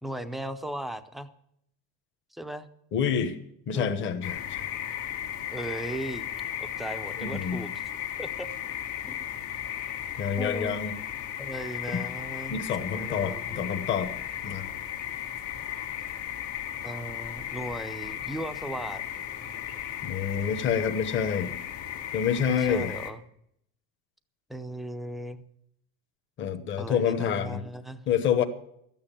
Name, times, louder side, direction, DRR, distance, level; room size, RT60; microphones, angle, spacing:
voice 1, 0.0-1.3 2.3-2.7 3.7-3.9 5.5-6.2 6.6-7.8 8.2-8.5 9.0-9.1 10.4-10.8 11.4-12.6 12.9-13.8 16.8-19.0 22.4-23.2 24.5-25.4 26.8-28.0, right 1 dB, ahead, 9 dB, 0.5 m, -37 dB
voice 2, 2.9-3.4 3.7-4.6 7.2-7.6 10.2-11.0 11.9-12.0 12.5-14.1 14.4-14.6 20.0-21.5 22.1-22.9 26.4-27.6 28.1-28.4, left 7 dB, 35° left, 7 dB, 1.1 m, -27 dB
sound 1, 4.2-23.1, left 10 dB, 85° left, 1.9 m, -36 dB
13.0 x 9.0 x 7.2 m, 0.74 s
cardioid pair, 160°, 36 cm